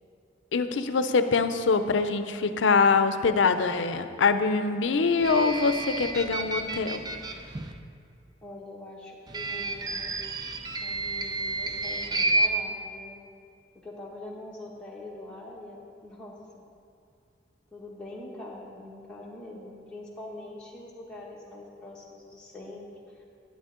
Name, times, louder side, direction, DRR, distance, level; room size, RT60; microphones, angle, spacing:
voice 1, 0.5-7.0, left 4 dB, 85° left, 10 dB, 0.5 m, -24 dB
sound 1, 5.2-7.7 9.3-12.5, right 2 dB, 20° right, 0.5 m, -30 dB
voice 2, 8.4-10.1 10.8-13.2 13.8-15.8 16.0-16.6 17.7-23.2, left 2 dB, 5° left, -6 dB, 1.1 m, -43 dB
11.0 x 9.1 x 3.7 m, 2.4 s
head